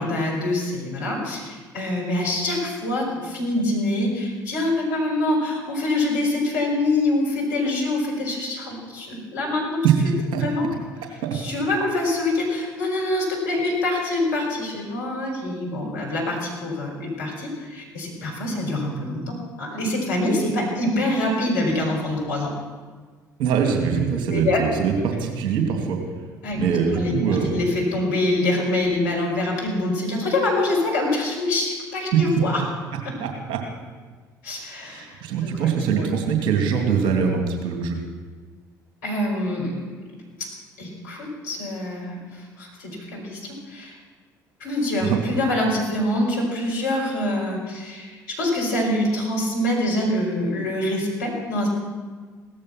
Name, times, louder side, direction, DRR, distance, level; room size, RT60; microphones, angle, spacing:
voice 1, 0.0-9.9 10.4-10.7 11.3-22.5 24.3-24.6 26.4-26.6 26.9-32.6 34.4-35.5 35.9-36.1 39.0-40.1 40.4-40.5 40.8-44.0 44.6-51.7, left 1 dB, 70° left, -2 dB, 5.3 m, -25 dB
voice 2, 23.4-26.0 26.5-27.5 33.2-33.6 34.8-38.0 45.0-45.3, right 6 dB, 55° right, 3 dB, 2.9 m, -23 dB
17.0 x 14.0 x 5.9 m, 1.4 s
figure-of-eight pair, 55°, 10 cm